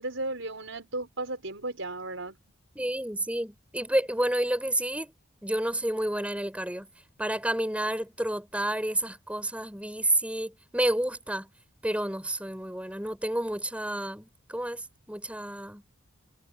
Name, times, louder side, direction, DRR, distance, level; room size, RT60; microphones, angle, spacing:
voice 1, 0.0-2.4, right 2 dB, 70° right, 4.8 m, -35 dB
voice 2, 2.8-5.1 5.4-6.9 7.2-11.5 11.8-15.8, right 1 dB, 5° right, 5.5 m, -30 dB
head